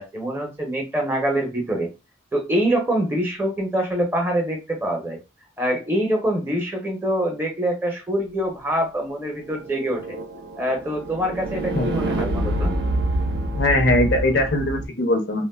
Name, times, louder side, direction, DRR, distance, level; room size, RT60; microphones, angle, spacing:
voice 1, 0.0-1.9 2.3-5.2 5.6-10.2 10.6-12.7, right 1 dB, 15° right, 1 dB, 0.6 m, -25 dB
sound 1, 9.3-14.8, right 1 dB, 70° right, 0.6 m, -27 dB
voice 2, 13.6-15.4, left 1 dB, 70° left, 4 dB, 0.7 m, -20 dB
3.3 x 2.2 x 2.2 m, 0.26 s
head